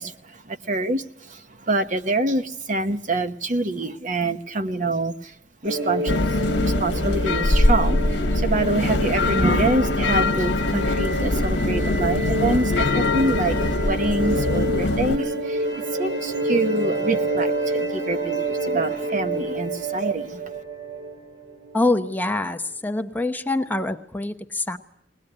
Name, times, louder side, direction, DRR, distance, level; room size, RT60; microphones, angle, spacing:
voice 1, 0.0-5.4 5.6-20.4, right 2 dB, 45° right, 9 dB, 1.1 m, -26 dB
sound 1, 5.6-22.1, right 2 dB, 75° right, 3.2 m, -28 dB
sound 2, 6.1-15.2, left 2 dB, 80° left, 1.1 m, -22 dB
voice 2, 21.7-24.8, left 2 dB, 10° left, 6 dB, 0.9 m, -25 dB
21.5 x 19.0 x 9.9 m, 0.73 s
head